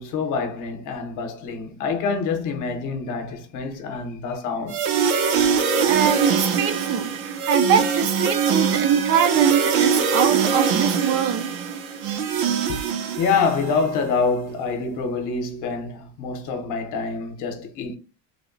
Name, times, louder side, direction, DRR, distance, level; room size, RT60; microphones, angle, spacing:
voice 1, 0.0-4.8 12.7-12.8 13.2-18.0, left 4 dB, 50° left, 0.9 m, -26 dB
sound 1, 4.7-13.8, right 6 dB, 70° right, 0.8 m, -22 dB
voice 2, 5.9-11.5, right 8 dB, 35° right, 0.4 m, -23 dB
3.3 x 2.1 x 3.8 m
cardioid pair, 165°, 39 cm